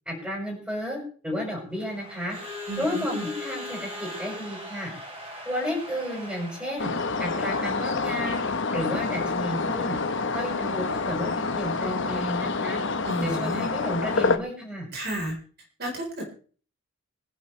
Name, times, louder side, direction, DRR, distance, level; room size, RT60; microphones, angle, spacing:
voice 1, 0.1-2.4 2.8-4.9 5.4-6.9 7.2-8.4 8.7-10.0 10.3-12.8 13.2-14.9, equal, 10° right, -4 dB, 6.2 m, -32 dB
Crowd / Alarm, 1.7-7.3, left 1 dB, 25° right, 6.1 m, -39 dB
voice 2, 2.7-3.3 13.1-13.7 14.9-15.4 15.8-16.2, equal, 50° right, 1 dB, 4.3 m, -32 dB
sound 1, 6.8-14.4, left 4 dB, 60° left, 1.2 m, -27 dB
25.0 x 11.0 x 3.3 m, 0.42 s
head